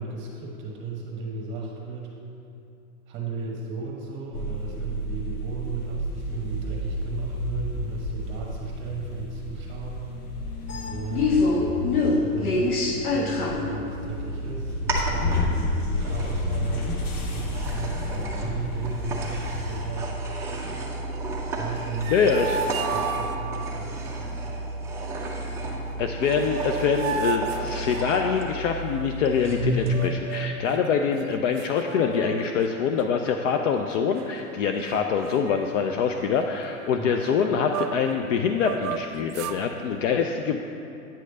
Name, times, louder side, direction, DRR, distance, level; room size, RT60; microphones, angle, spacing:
voice 1, 0.0-2.1 3.1-10.4 10.7-11.3 12.2-16.9 17.3-20.1 21.6-22.1 22.9-24.5 36.6-37.2, right 3 dB, 25° right, -2 dB, 1.2 m, -35 dB
sound 1, 4.3-20.0, left 2 dB, 80° left, 1.2 m, -28 dB
sound 2, 13.9-29.9, right 2 dB, 5° right, 0.4 m, -32 dB
sound 3, 21.7-23.7 25.9-26.0 26.3-28.5 29.8-30.6 31.2-31.3 31.6-32.7 33.0-33.3 33.9-34.5 34.8-35.0 35.3-38.2 38.5-39.6, right 7 dB, 70° right, 0.6 m, -34 dB
voice 2, 22.1-22.6 26.0-40.6, left 6 dB, 60° left, 4 dB, 0.5 m, -25 dB
8.9 x 3.2 x 6.6 m, 2.7 s
hypercardioid pair, 135°, 44 cm